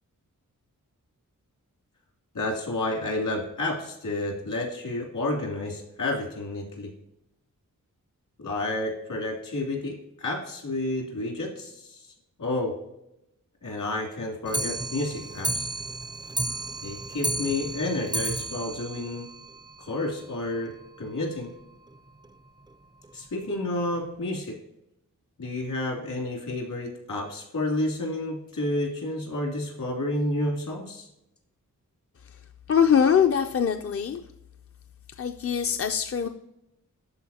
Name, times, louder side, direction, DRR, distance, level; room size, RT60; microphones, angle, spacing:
voice 1, 2.3-6.9 8.4-12.1 12.4-12.7 13.6-15.7 16.8-19.3 19.8-20.7 21.0-21.5 23.1-24.6 25.4-31.1, left 2 dB, 70° left, 0 dB, 2.9 m, -30 dB
Clock, 14.5-20.0 20.3-20.4 20.7-20.8 21.1-21.2 21.4-21.5 22.2-22.3 23.0-23.1 23.8-23.9, right 2 dB, 15° right, 0.4 m, -32 dB
voice 2, 32.7-34.2 35.2-36.3, left 7 dB, 45° left, 6 dB, 0.5 m, -22 dB
13.0 x 4.6 x 2.8 m, 0.84 s
wide cardioid pair, 105°, 33 cm